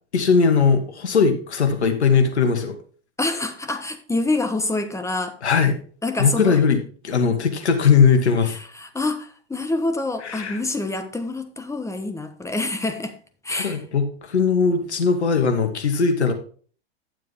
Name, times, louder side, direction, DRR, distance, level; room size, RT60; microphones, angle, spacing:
voice 1, 0.1-2.8 5.4-5.7 6.2-8.6 10.2-10.6 13.5-16.3, left 5 dB, 90° left, 2.2 m, -19 dB
voice 2, 3.2-5.4 6.0-6.6 8.5-13.2 13.4-13.8, left 2 dB, 10° left, 1.2 m, -26 dB
12.0 x 7.5 x 3.6 m
hypercardioid pair, 105°, 32 cm